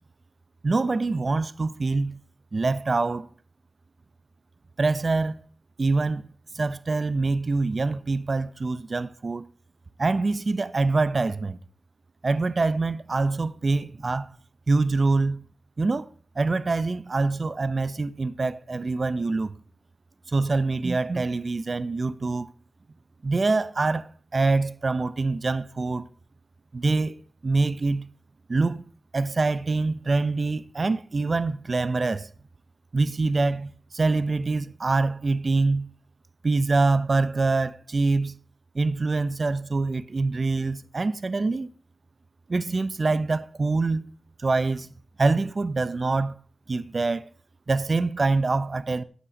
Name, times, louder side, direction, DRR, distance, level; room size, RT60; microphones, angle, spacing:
voice 1, 0.6-2.2 2.5-3.3 4.8-5.4 5.8-6.2 6.5-9.5 10.0-11.6 12.2-14.3 14.7-15.4 15.8-16.1 16.4-19.5 20.3-22.5 23.2-26.1 26.7-28.1 28.5-28.8 29.1-32.3 32.9-35.9 36.4-38.3 38.7-41.7 42.5-44.1 44.4-44.9 45.2-46.3 46.7-47.3 47.7-49.0, right 3 dB, 50° right, 0.6 m, -25 dB
8.6 x 8.3 x 4.8 m
wide cardioid pair, 80°, 0 cm